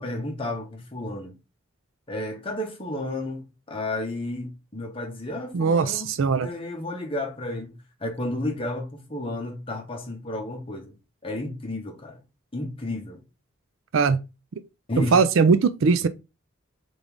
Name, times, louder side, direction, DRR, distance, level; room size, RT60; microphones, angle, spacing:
voice 1, 0.0-1.4 2.1-6.1 6.4-10.9 11.2-12.2 12.5-13.2 14.9-15.2, left 1 dB, 25° left, 1.0 m, -32 dB
voice 2, 5.5-6.5 13.9-14.2 15.0-16.1, right 5 dB, 65° right, 0.4 m, -20 dB
3.8 x 3.5 x 3.5 m
head